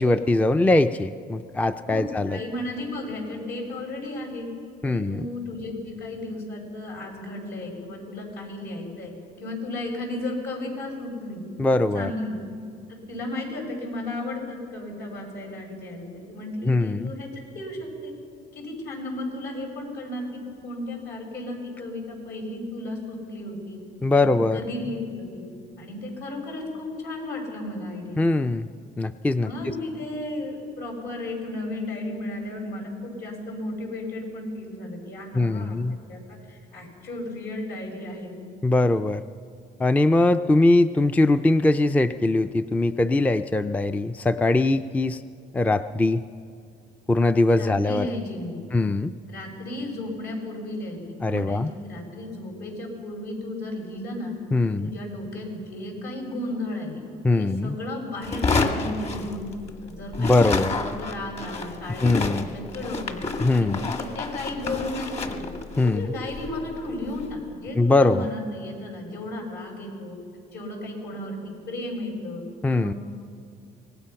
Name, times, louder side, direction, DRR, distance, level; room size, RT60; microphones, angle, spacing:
voice 1, 0.0-2.4 4.8-5.3 11.6-12.1 16.6-17.1 24.0-24.6 28.2-28.7 29.0-29.7 35.3-36.0 38.6-39.2 39.8-45.2 45.5-46.2 47.1-48.1 48.7-49.1 51.2-51.7 54.5-54.9 57.2-57.8 60.2-60.7 62.0-62.5 63.4-63.8 65.8-66.1 67.8-68.3 72.6-72.9, left 2 dB, 10° left, 11 dB, 0.4 m, -21 dB
voice 2, 1.9-4.5 4.8-9.1 9.4-11.4 11.9-12.3 12.9-18.1 18.5-23.8 24.1-25.4 25.8-28.2 29.3-35.8 36.1-36.2 36.5-38.3 47.5-48.6 49.3-54.3 54.6-57.0 57.3-59.4 59.8-63.2 63.5-65.5 65.8-70.2 70.5-72.4 72.7-73.0, left 1 dB, 75° left, 1 dB, 6.4 m, -34 dB
sound 1, 58.2-59.8 60.1-67.3, left 3 dB, 40° left, 1.8 m, -30 dB
25.0 x 19.5 x 5.8 m, 2.3 s
cardioid pair, 110°, 17 cm